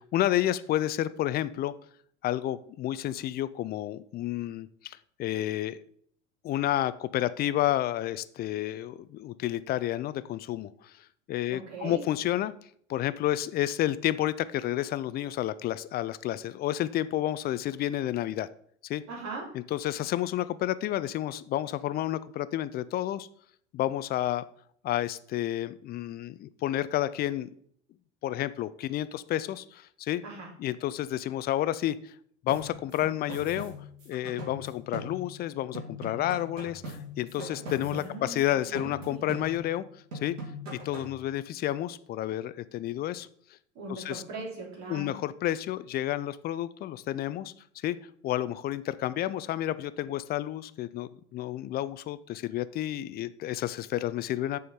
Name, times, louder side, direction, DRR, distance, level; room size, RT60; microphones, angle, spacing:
voice 1, 0.1-1.7 2.2-5.8 6.4-10.9 11.3-12.5 12.9-18.5 18.8-19.0 19.7-23.3 23.7-24.4 24.8-27.5 28.2-30.2 30.6-32.1 32.4-33.7 34.1-39.9 40.2-40.4 40.8-43.3 43.9-44.2 44.9-47.5 47.8-48.0 48.2-54.6, left 13 dB, 25° left, 16 dB, 0.4 m, -30 dB
voice 2, 11.5-12.0 19.1-19.6 30.2-30.5 37.8-39.2 43.8-45.2, right 3 dB, 45° right, -3 dB, 3.7 m, -40 dB
sound 1, 32.5-35.5 35.7-38.4 38.7-39.8 40.1-41.2, left 1 dB, 80° right, 2.7 m, -41 dB
6.9 x 4.9 x 5.2 m, 0.62 s
hypercardioid pair, 85°, 38 cm